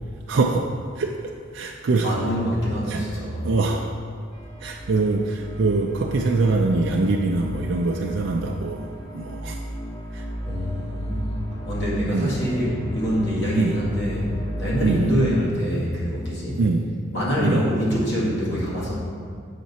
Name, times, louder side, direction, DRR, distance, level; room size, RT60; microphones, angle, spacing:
voice 1, 0.3-0.7 1.0-1.1 1.5-2.1 2.9-3.0 3.4-3.9 4.6-9.6 10.1-10.2 12.1-12.4 13.6-13.8 14.8-15.1 16.6-16.9 17.4-17.6, right 3 dB, 60° right, 0 dB, 0.4 m, -23 dB
voice 2, 2.0-3.5 10.5-14.3 14.6-16.6 17.1-19.0, equal, 55° left, -6 dB, 2.0 m, -25 dB
sound 1, 4.3-15.3, equal, 20° left, 0.8 m, -33 dB
7.4 x 5.8 x 4.1 m, 2.2 s
head